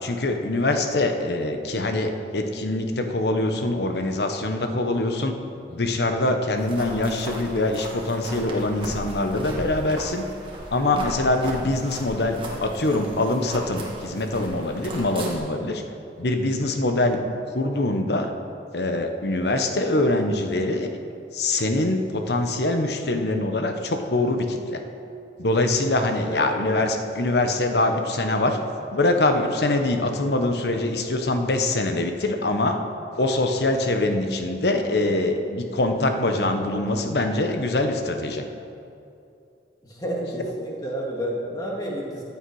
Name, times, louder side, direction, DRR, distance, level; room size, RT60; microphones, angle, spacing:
voice 1, 0.0-5.3 5.7-10.2 10.7-15.8 16.2-17.2 17.5-18.3 18.7-20.9 21.3-24.8 25.4-28.6 28.9-32.8 33.2-38.4, left 2 dB, 70° left, 5 dB, 1.1 m, -24 dB
sound 1, 6.6-15.3, right 1 dB, 30° right, 1.7 m, -37 dB
voice 2, 26.2-26.6 39.9-42.2, equal, 20° left, -3 dB, 2.1 m, -30 dB
15.0 x 8.9 x 4.9 m, 2.6 s
head